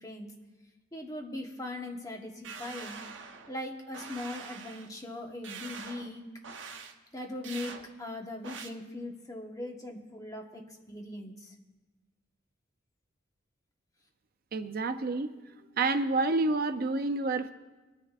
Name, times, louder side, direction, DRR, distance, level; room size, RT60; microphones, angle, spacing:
voice 1, 0.0-0.3 0.9-3.0 3.5-6.3 7.1-11.5, left 1 dB, 20° left, 2 dB, 1.2 m, -40 dB
sound 1, 2.4-3.5 3.9-4.9 5.4-6.1 6.4-6.9 7.4-7.8 8.4-8.7, right 5 dB, 75° right, 1.0 m, -44 dB
voice 2, 14.5-15.3 15.8-17.5, right 3 dB, 50° right, 9 dB, 0.5 m, -28 dB
24.0 x 9.7 x 2.5 m, 1.2 s
head